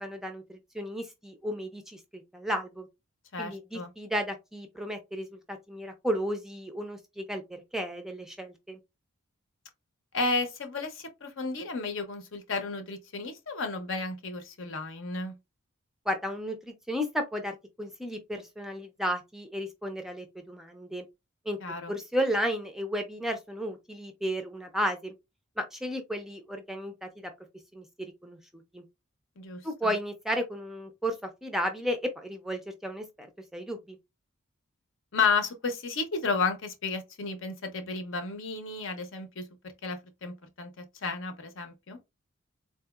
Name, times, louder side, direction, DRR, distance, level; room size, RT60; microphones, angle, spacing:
voice 1, 0.0-2.9 3.4-7.4 7.7-8.8 16.1-21.1 21.5-21.6 21.9-25.1 25.6-27.3 27.7-28.8 29.6-33.3 33.5-34.0, equal, ahead, 0.4 m, -33 dB
voice 2, 3.3-3.9 10.1-15.3 21.6-21.9 29.4-29.9 35.1-39.5 39.8-42.0, left 4 dB, 65° left, 0.7 m, -32 dB
3.8 x 2.7 x 2.3 m
head